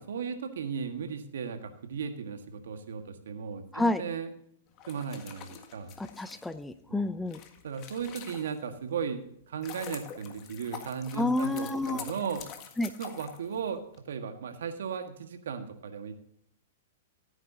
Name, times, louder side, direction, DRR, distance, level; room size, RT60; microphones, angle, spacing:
voice 1, 0.1-4.3 4.9-6.0 6.9-7.1 7.6-12.4 13.0-16.1, right 6 dB, 75° right, 7 dB, 1.6 m, -36 dB
Trout splashing after being caught, 4.7-8.8 9.3-14.0, left 8 dB, 40° left, 1.7 m, -46 dB
voice 2, 6.0-7.4 11.2-12.0 12.8-12.9, left 2 dB, 5° left, 12 dB, 0.6 m, -29 dB
15.5 x 9.1 x 2.8 m, 0.67 s
hypercardioid pair, 120°, 0 cm